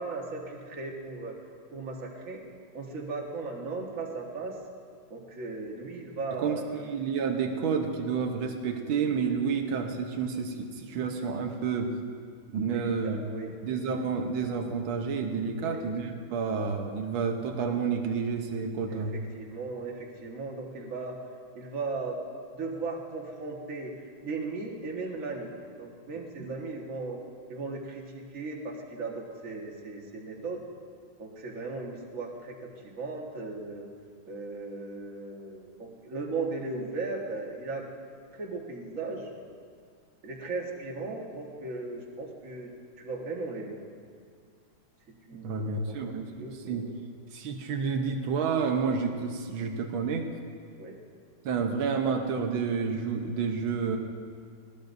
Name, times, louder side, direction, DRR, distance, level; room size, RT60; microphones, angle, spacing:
voice 1, 0.0-1.4 1.7-2.4 2.7-4.6 5.1-6.9 12.7-13.5 15.6-15.8 18.9-21.2 21.6-22.2 22.5-23.9 24.2-27.2 27.5-30.6 31.2-33.9 34.3-37.9 38.3-39.3 40.2-43.8 45.3-46.9 50.8-51.0, right 3 dB, 45° right, -1 dB, 1.9 m, -37 dB
voice 2, 6.4-11.9 12.5-13.2 13.6-19.2 26.4-26.6 45.4-46.9 47.3-50.3 51.5-54.0, right 5 dB, 85° right, 3 dB, 1.8 m, -30 dB
20.5 x 18.5 x 2.7 m, 2.1 s
omnidirectional pair, 2.1 m